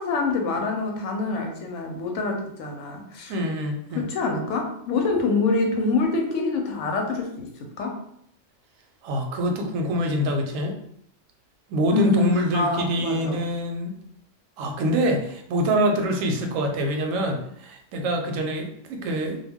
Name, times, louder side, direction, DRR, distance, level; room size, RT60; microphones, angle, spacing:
voice 1, 0.0-3.3 3.9-8.0 11.9-13.4, left 3 dB, 80° left, 3 dB, 0.9 m, -25 dB
voice 2, 3.3-4.0 9.0-10.8 11.7-14.0 14.6-19.4, equal, 85° right, 3 dB, 1.0 m, -25 dB
2.2 x 2.2 x 3.4 m, 0.70 s
omnidirectional pair, 1.3 m